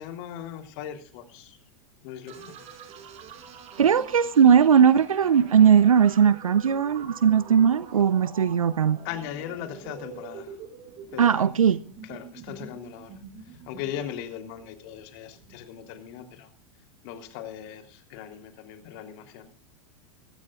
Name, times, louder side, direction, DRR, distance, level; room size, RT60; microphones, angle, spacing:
voice 1, 0.0-1.6 2.0-2.5 9.0-10.6 11.1-11.5 12.0-13.2 13.7-16.5 17.0-19.5, left 10 dB, 50° left, 3.3 m, -38 dB
sound 1, 2.3-15.9, right 6 dB, 40° right, 5.1 m, -45 dB
voice 2, 3.8-9.0 11.2-11.8, right 8 dB, 80° right, 0.7 m, -19 dB
22.0 x 16.0 x 2.4 m
figure-of-eight pair, 95°, 18 cm